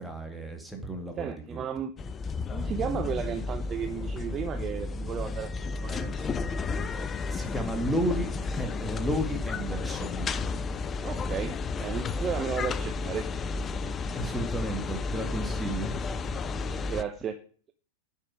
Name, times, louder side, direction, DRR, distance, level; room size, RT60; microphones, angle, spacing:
voice 1, 0.0-1.6 7.3-10.5 14.1-16.1, equal, 5° right, 4 dB, 2.1 m, -33 dB
voice 2, 1.2-1.9 2.5-6.5 11.0-13.3 16.8-17.4, right 7 dB, 25° right, 9 dB, 0.7 m, -34 dB
sound 1, 2.0-17.0, left 4 dB, 20° left, 0.5 m, -32 dB
10.0 x 5.5 x 6.2 m, 0.43 s
figure-of-eight pair, 90°, 0 cm